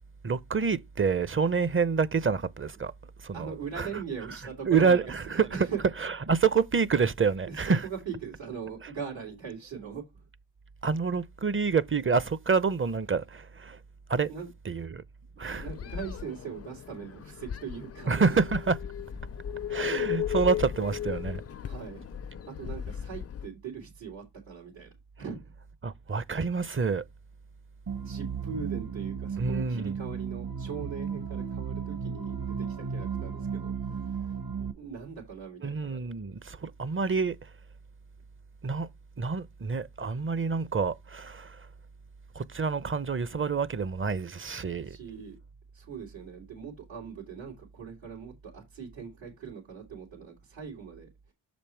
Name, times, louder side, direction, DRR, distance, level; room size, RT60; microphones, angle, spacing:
voice 1, 0.2-2.9 3.2-3.9 4.7-5.5 6.0-7.8 10.8-13.8 14.1-14.3 14.7-15.0 15.4-15.7 18.1-18.7 19.7-21.4 25.8-27.0 29.4-29.9 35.6-37.4 38.6-38.9 39.2-41.7 42.3-45.0, right 5 dB, 30° right, 0.6 m, -27 dB
voice 2, 3.3-5.8 7.5-10.2 14.3-14.5 14.7-14.9 15.5-18.4 21.6-22.0 22.6-24.9 25.2-25.4 28.0-35.8 44.8-45.4 45.7-51.3, right 6 dB, 85° right, 3.2 m, -40 dB
sound 1, 15.5-23.5, left 9 dB, 35° left, 0.4 m, -36 dB
sound 2, 27.9-34.7, right 6 dB, 50° right, 1.2 m, -34 dB
6.9 x 5.2 x 4.5 m
cardioid pair, 60°, 45 cm